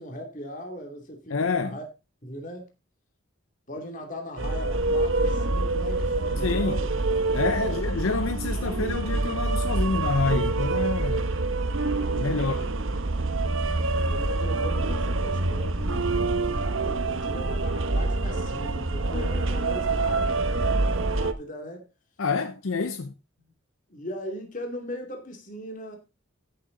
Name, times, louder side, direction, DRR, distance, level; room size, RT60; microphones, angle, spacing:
voice 1, 0.0-1.9 2.2-2.7 3.7-6.9 7.6-7.8 12.2-12.7 14.0-16.1 16.4-21.9 23.9-26.0, equal, 40° left, 2.5 m, -39 dB
voice 2, 1.3-1.8 6.4-6.8 7.3-11.4 12.1-12.7 22.2-23.1, left 4 dB, 85° left, 0.7 m, -27 dB
sound 1, 4.4-21.3, right 2 dB, 75° right, 1.1 m, -26 dB
15.0 x 7.0 x 3.9 m
head